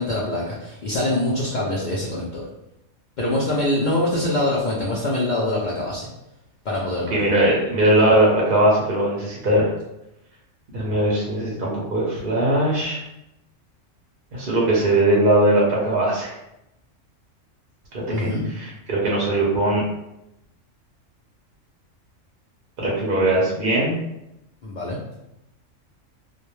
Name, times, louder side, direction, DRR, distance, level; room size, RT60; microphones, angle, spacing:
voice 1, 0.0-2.4 3.2-6.1 6.7-7.3 18.1-18.4 24.6-25.0, left 1 dB, 90° left, -4 dB, 0.4 m, -24 dB
voice 2, 7.1-9.7 10.7-13.0 14.3-16.3 17.9-19.8 22.8-23.9, right 1 dB, 55° right, -4 dB, 0.6 m, -20 dB
2.2 x 2.1 x 3.0 m, 0.88 s
omnidirectional pair, 1.3 m